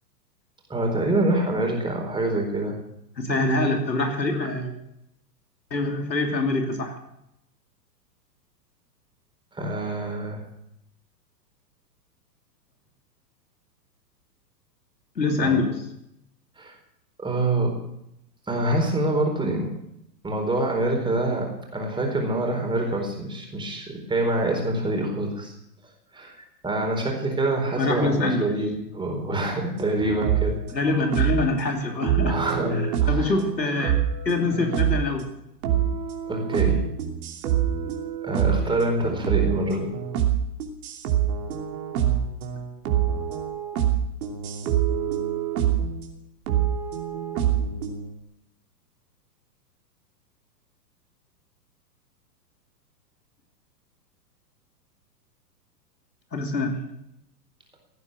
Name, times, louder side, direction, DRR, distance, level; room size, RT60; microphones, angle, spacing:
voice 1, 0.7-2.8 9.5-10.4 15.4-15.6 16.6-16.8 17.2-17.8 18.5-19.7 20.2-25.5 26.1-26.4 26.6-30.6 32.2-33.3 36.3-36.8 38.2-39.9, right 2 dB, 10° right, 1 dB, 4.3 m, -26 dB
voice 2, 3.2-4.8 5.7-7.0 15.2-15.9 27.8-28.6 30.7-32.4 32.7-34.0 34.2-35.3 56.3-56.9, left 2 dB, 90° left, 3 dB, 3.0 m, -25 dB
sound 1, 29.8-31.5 32.0-35.3 35.6-46.1 46.5-48.1, right 10 dB, 55° right, 3.0 m, -26 dB
17.0 x 9.7 x 7.7 m, 0.81 s
hypercardioid pair, 110°, 49 cm